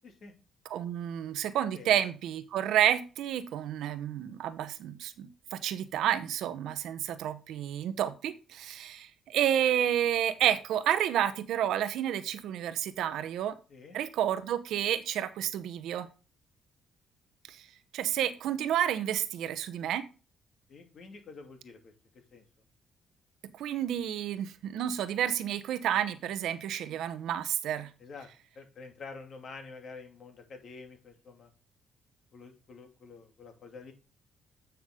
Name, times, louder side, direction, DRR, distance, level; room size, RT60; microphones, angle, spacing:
voice 1, 0.7-13.6 13.9-16.1 17.5-17.6 17.9-20.0 23.4-27.9, right 10 dB, 80° right, 12 dB, 0.9 m, -30 dB
voice 2, 13.7-14.0 20.7-21.9 22.3-22.4 28.0-28.3 28.5-31.5 32.3-33.9, left 4 dB, 55° left, 4 dB, 2.7 m, -48 dB
9.2 x 5.9 x 3.7 m, 0.32 s
cardioid pair, 90°, 0 cm